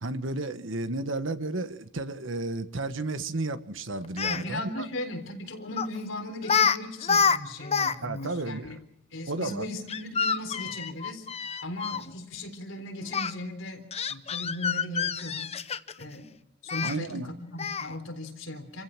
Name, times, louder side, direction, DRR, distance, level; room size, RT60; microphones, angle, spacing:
voice 1, 0.0-4.9 8.0-8.7 9.3-9.7 16.8-17.3, right 2 dB, 70° right, 1.4 m, -32 dB
Speech, 4.0-4.4 5.8-6.0 6.4-6.8 7.0-7.9 8.2-8.3 9.9-12.0 13.1-13.3 13.9-16.0 16.7-16.9 17.6-17.9, left 6 dB, 30° left, 0.8 m, -27 dB
voice 2, 4.3-8.8 9.1-11.3 11.6-15.5 16.0-16.3 16.6-18.8, left 1 dB, 75° left, 3.9 m, -37 dB
28.5 x 15.5 x 6.1 m
head